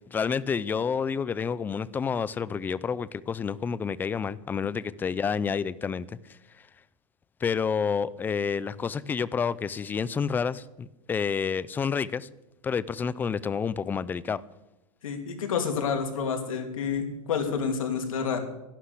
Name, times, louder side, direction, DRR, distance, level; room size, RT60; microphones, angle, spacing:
voice 1, 0.1-6.1 7.4-12.3 12.6-14.4, left 6 dB, 10° left, 0.4 m, -29 dB
voice 2, 15.0-18.4, left 6 dB, 80° left, 3.0 m, -29 dB
12.0 x 11.5 x 8.3 m
hypercardioid pair, 140°, 17 cm